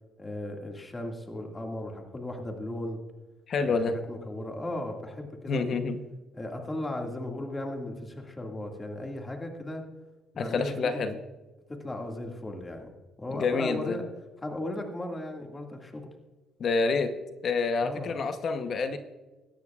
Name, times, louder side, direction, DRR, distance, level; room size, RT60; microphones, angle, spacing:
voice 1, 0.2-3.0 3.6-5.8 6.3-9.8 10.3-11.0 11.7-12.9 13.2-14.0 14.4-16.1 17.8-18.1, left 1 dB, 20° left, 2 dB, 2.0 m, -36 dB
voice 2, 3.5-3.9 5.5-6.0 10.4-11.2 13.3-14.0 16.6-17.1 17.4-19.0, left 4 dB, 50° left, 8 dB, 0.9 m, -28 dB
17.5 x 13.0 x 2.4 m, 1.2 s
cardioid pair, 100°, 0 cm